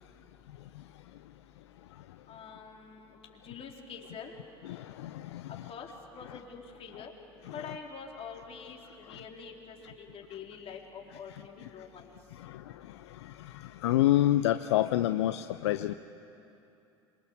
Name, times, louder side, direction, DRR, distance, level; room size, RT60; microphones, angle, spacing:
voice 1, 2.3-3.2 3.4-4.3 5.7-5.9 6.1-7.1 7.5-12.1, left 6 dB, 40° left, 0 dB, 4.0 m, -45 dB
voice 2, 4.6-5.7 6.3-6.4 7.5-7.7 9.1-9.2 11.3-11.7 12.3-15.9, left 14 dB, 75° left, 11 dB, 0.6 m, -29 dB
27.0 x 24.0 x 7.3 m, 2.8 s
hypercardioid pair, 70°, 15 cm